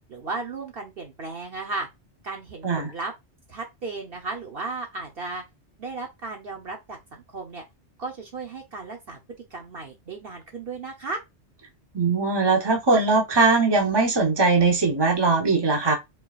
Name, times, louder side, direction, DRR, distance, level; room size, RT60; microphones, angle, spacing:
voice 1, 0.1-1.9 2.2-3.1 3.5-5.4 5.8-7.6 8.0-9.2 9.5-11.2, right 3 dB, 55° right, 1.1 m, -35 dB
voice 2, 11.9-15.9, right 3 dB, 20° right, 1.1 m, -20 dB
4.7 x 4.0 x 2.4 m
omnidirectional pair, 1.2 m